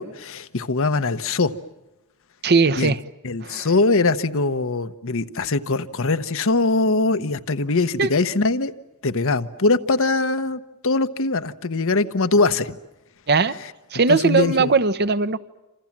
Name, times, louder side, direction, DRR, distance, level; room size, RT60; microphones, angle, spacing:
voice 1, 0.0-1.5 2.8-2.9 3.2-8.7 9.0-12.8 14.1-14.7, left 3 dB, 65° left, 10 dB, 1.1 m, -22 dB
voice 2, 2.4-3.0 3.4-3.7 8.0-8.1 13.3-13.6 13.9-15.4, right 4 dB, 45° right, 12 dB, 0.9 m, -19 dB
28.0 x 27.5 x 7.4 m, 0.99 s
head